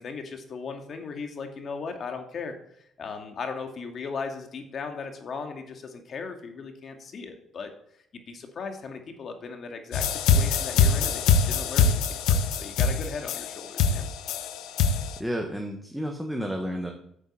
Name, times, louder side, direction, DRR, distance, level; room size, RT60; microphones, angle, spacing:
voice 1, 0.0-7.7 8.1-14.1, left 5 dB, 45° left, 5 dB, 2.2 m, -37 dB
sound 1, 9.9-15.1, left 5 dB, 85° left, 1.2 m, -23 dB
voice 2, 15.2-16.9, equal, ahead, 2 dB, 1.5 m, -31 dB
9.4 x 7.9 x 7.9 m, 0.73 s
cardioid pair, 125°, 0 cm